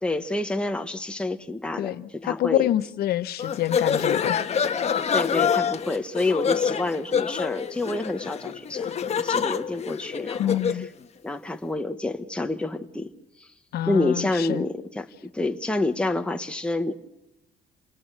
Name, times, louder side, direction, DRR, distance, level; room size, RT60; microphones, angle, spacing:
voice 1, 0.0-2.7 5.1-8.9 9.2-10.6 11.2-13.1 13.4-13.5 13.9-16.9, left 2 dB, 5° left, 1.5 m, -28 dB
voice 2, 1.8-4.6 10.4-10.9 13.7-14.6, left 13 dB, 70° left, 1.0 m, -27 dB
sound 1, 3.4-10.9, left 7 dB, 40° left, 1.5 m, -26 dB
28.5 x 19.5 x 6.4 m
cardioid pair, 110°, 17 cm